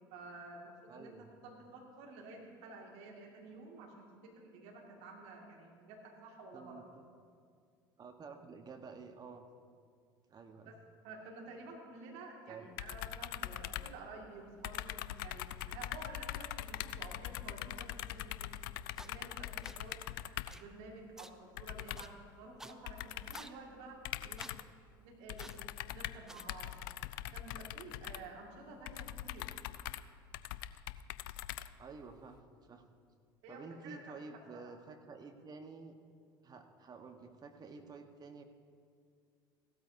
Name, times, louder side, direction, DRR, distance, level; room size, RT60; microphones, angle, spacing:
voice 1, 0.1-1.1 1.4-6.8 10.7-10.8 11.0-18.7 19.0-20.0 20.5-24.5 25.0-25.6 25.9-26.7 27.3-29.5 33.4-34.2 34.5-34.7 35.1-35.2, right 3 dB, 65° right, 0 dB, 2.1 m, -51 dB
voice 2, 0.9-1.3 6.5-6.8 8.0-9.5 10.3-10.8 12.5-12.7 31.8-32.8 33.5-36.0 36.4-38.4, right 4 dB, 35° right, 6 dB, 1.2 m, -50 dB
sound 1, 12.8-14.4 14.6-20.7 21.6-22.2 22.9-23.5 24.0-24.8 25.3-32.1, left 14 dB, 70° left, 0.4 m, -43 dB
sound 2, 19.0-19.1 19.6-19.8 20.5-20.6 21.2-21.3 21.9-22.1 22.6-22.7 23.3-23.5 24.4-24.6 25.4-25.6 26.3-26.4, right 1 dB, 5° right, 0.6 m, -50 dB
16.5 x 13.0 x 2.7 m, 2.2 s
hypercardioid pair, 70°, 12 cm